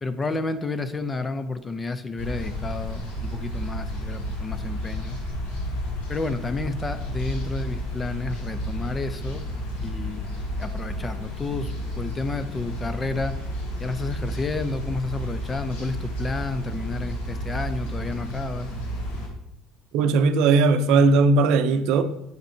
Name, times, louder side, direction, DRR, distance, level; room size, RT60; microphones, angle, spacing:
voice 1, 0.0-5.2 6.1-9.4 9.8-13.4 13.8-18.7, left 3 dB, 15° left, 12 dB, 0.5 m, -31 dB
sound 1, 2.2-19.3, equal, 90° left, 2.4 m, -32 dB
voice 2, 19.9-22.0, right 4 dB, 70° right, 10 dB, 0.6 m, -18 dB
7.9 x 5.4 x 4.3 m, 0.80 s
cardioid pair, 135°, 0 cm